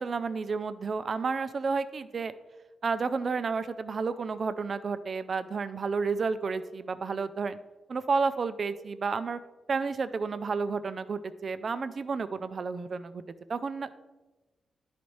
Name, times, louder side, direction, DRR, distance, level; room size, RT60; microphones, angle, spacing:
voice 1, 0.0-2.3 2.8-7.6 7.9-9.4 9.7-13.2 13.5-13.9, right 4 dB, 55° right, 12 dB, 0.4 m, -31 dB
10.0 x 4.1 x 3.1 m, 1.1 s
cardioid pair, 75°, 0 cm